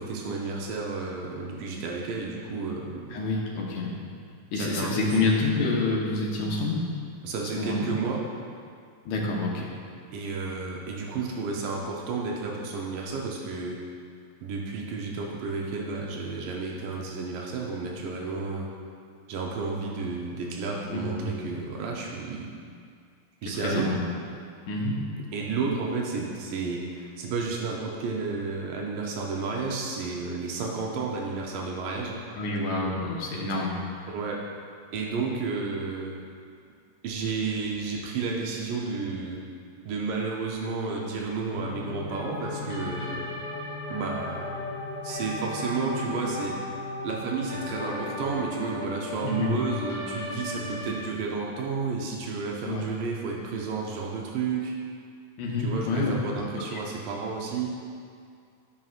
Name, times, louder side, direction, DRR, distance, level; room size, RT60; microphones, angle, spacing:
voice 1, 0.0-3.2 4.6-5.3 7.2-8.2 10.1-13.8 14.4-18.7 19.3-22.5 23.4-24.0 25.3-32.2 34.1-34.4 34.9-36.1 37.0-39.5 39.9-43.3 43.9-44.5 45.0-46.6 47.0-54.7 55.6-57.7, right 4 dB, 85° right, -2 dB, 2.4 m, -31 dB
voice 2, 3.1-3.9 4.5-6.8 7.6-7.9 9.1-9.7 20.9-21.3 23.5-24.0 24.7-25.0 32.4-33.8 49.2-49.5 52.6-52.8 55.4-56.1, left 3 dB, 70° left, -4 dB, 2.2 m, -27 dB
sound 1, 41.5-51.0, left 2 dB, 45° left, 1.2 m, -35 dB
12.5 x 5.6 x 2.4 m, 2.2 s
omnidirectional pair, 3.7 m